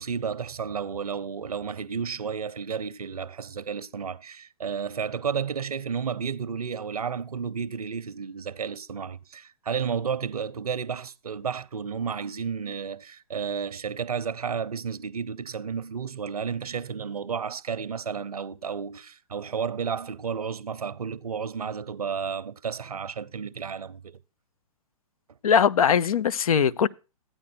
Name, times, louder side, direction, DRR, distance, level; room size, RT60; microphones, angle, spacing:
voice 1, 0.0-24.2, right 6 dB, 90° right, 0.7 m, -32 dB
voice 2, 25.4-26.9, left 7 dB, 75° left, 0.6 m, -21 dB
13.0 x 9.0 x 4.4 m
hypercardioid pair, 125°, 19 cm